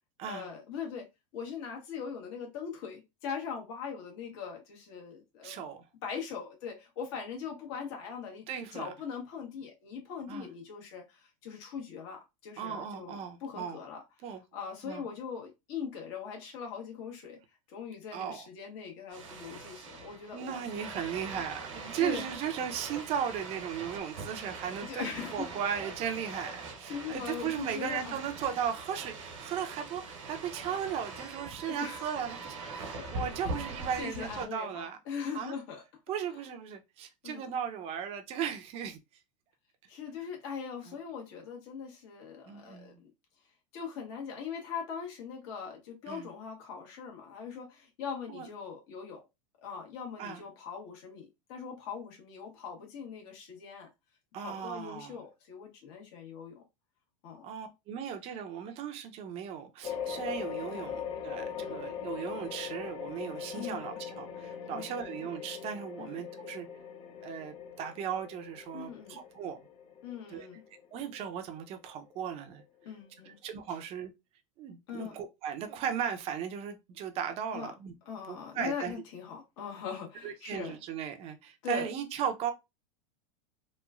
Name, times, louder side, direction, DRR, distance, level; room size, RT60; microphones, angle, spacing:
voice 1, 0.3-1.1 1.3-5.6 6.0-8.4 8.7-14.0 14.5-17.4 17.7-20.8 22.0-22.2 24.9-25.5 25.8-25.9 26.2-26.6 26.9-28.2 31.6-32.1 33.0-33.5 34.0-35.8 37.2-37.5 39.9-42.9 43.7-49.2 49.6-53.9 54.4-56.6 57.2-57.4 60.7-60.9 61.6-61.7 63.5-64.0 64.7-65.0 66.0-66.2 68.7-69.2 70.0-70.6 72.8-73.4 74.9-75.1 77.5-77.7 78.1-80.8 81.6-81.9, left 6 dB, 60° left, 1.1 m, -41 dB
voice 2, 5.4-5.8 8.5-8.9 10.3-10.5 12.6-13.8 14.2-14.4 14.8-15.0 18.1-18.4 20.3-35.0 35.3-35.5 36.1-39.0 40.9-41.0 42.5-43.0 46.1-46.3 48.3-48.5 50.2-50.4 54.3-55.2 57.4-66.7 67.2-69.6 70.3-70.5 70.9-72.6 73.2-74.1 74.6-77.9 78.3-78.9 80.1-82.5, right 8 dB, 40° right, 0.6 m, -36 dB
sound 1, 19.1-34.4, right 3 dB, 80° right, 1.1 m, -42 dB
sound 2, 59.8-72.6, left 8 dB, 35° left, 0.5 m, -41 dB
3.0 x 2.2 x 2.3 m
hypercardioid pair, 120°, 16 cm